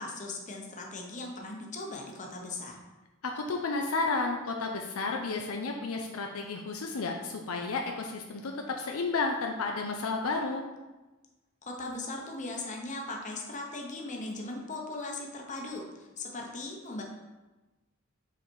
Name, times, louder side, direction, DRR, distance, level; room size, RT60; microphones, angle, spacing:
voice 1, 0.0-2.8 11.6-17.0, left 2 dB, 35° left, 0 dB, 1.0 m, -38 dB
voice 2, 3.2-10.6, left 3 dB, 70° left, 2 dB, 0.6 m, -32 dB
5.9 x 4.0 x 4.5 m, 1.1 s
head